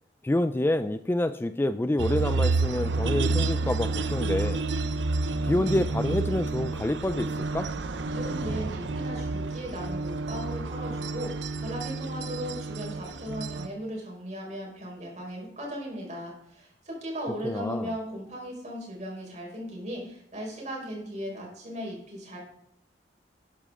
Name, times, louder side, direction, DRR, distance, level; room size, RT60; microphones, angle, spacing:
voice 1, 0.2-4.6 5.4-7.7 17.4-17.9, left 1 dB, 10° left, 11 dB, 0.3 m, -27 dB
sound 1, 2.0-13.7, right 3 dB, 85° right, 0.7 m, -29 dB
voice 2, 8.1-22.4, equal, 40° right, -2 dB, 4.7 m, -37 dB
12.5 x 10.0 x 3.7 m, 0.72 s
head